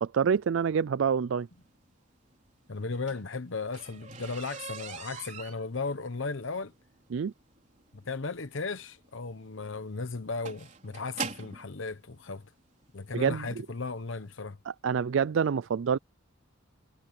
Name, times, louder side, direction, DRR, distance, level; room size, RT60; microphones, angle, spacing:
voice 1, 0.0-1.5 7.1-7.3 13.1-13.5 14.7-16.0, right 6 dB, 65° right, 0.4 m, -27 dB
voice 2, 2.7-6.7 7.9-12.4 12.9-14.6, left 4 dB, 65° left, 0.9 m, -36 dB
sound 1, 2.8-11.7 12.6-12.7 13.2-13.5 13.7-13.8 14.2-14.3, right 5 dB, 35° right, 4.4 m, -42 dB
head